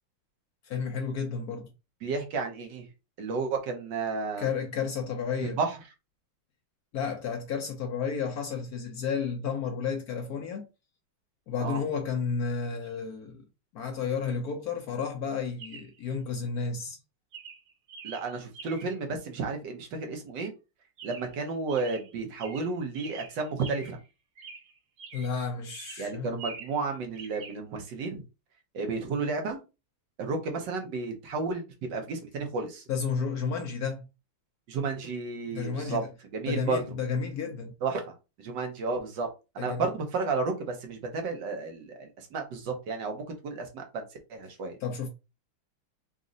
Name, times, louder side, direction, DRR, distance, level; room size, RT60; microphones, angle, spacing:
voice 1, 0.6-1.7 4.4-5.6 6.9-10.7 11.5-13.4 13.7-17.0 25.1-26.4 32.9-34.1 35.5-36.1 36.5-37.7 39.6-39.9 44.8-45.1, left 5 dB, 70° left, 0.9 m, -32 dB
voice 2, 2.0-2.9 3.2-4.5 5.4-5.8 11.6-11.8 18.0-20.5 21.0-24.0 26.0-28.2 28.7-29.6 30.2-31.6 31.9-32.8 34.7-36.0 36.3-36.8 37.8-38.1 38.4-39.3 39.5-44.0 44.3-44.8, right 4 dB, 60° right, 1.5 m, -32 dB
Chirp tweet, 12.8-13.0 15.6-16.0 16.7-17.0 17.3-19.0 21.0-21.4 21.7-24.1 24.4-25.4 25.7-26.9 27.1-27.6, right 5 dB, 90° right, 1.9 m, -46 dB
4.1 x 2.5 x 3.8 m
omnidirectional pair, 2.4 m